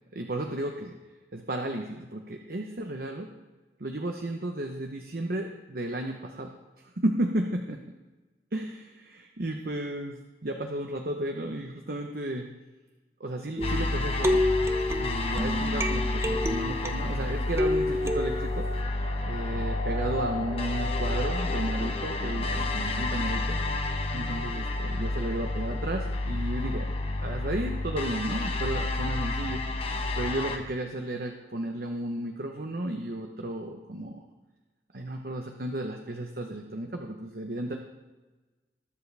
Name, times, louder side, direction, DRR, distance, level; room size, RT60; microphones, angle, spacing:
voice 1, 0.1-0.9 1.3-3.3 3.8-6.5 7.0-7.8 8.5-12.5 13.2-14.4 15.0-18.7 19.2-23.6 24.1-26.9 27.2-29.6 30.2-34.2 34.9-37.8, right 1 dB, 55° right, 3 dB, 0.9 m, -33 dB
sound 1, 13.6-30.6, left 2 dB, 35° left, 1.0 m, -30 dB
sound 2, 13.6-17.1 17.6-18.8, left 1 dB, 15° right, 0.6 m, -29 dB
21.0 x 7.3 x 3.4 m, 1.2 s
head